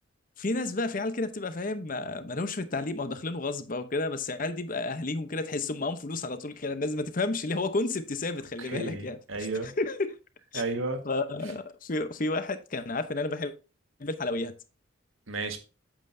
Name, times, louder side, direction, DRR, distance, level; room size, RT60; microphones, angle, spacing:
voice 1, 0.4-9.2 9.6-10.2 10.5-10.6 11.0-13.5 14.0-14.5, left 2 dB, 40° left, 0.8 m, -31 dB
voice 2, 8.6-9.7 10.5-11.0 15.3-15.6, right 3 dB, 85° right, 1.6 m, -32 dB
8.7 x 7.8 x 2.7 m
head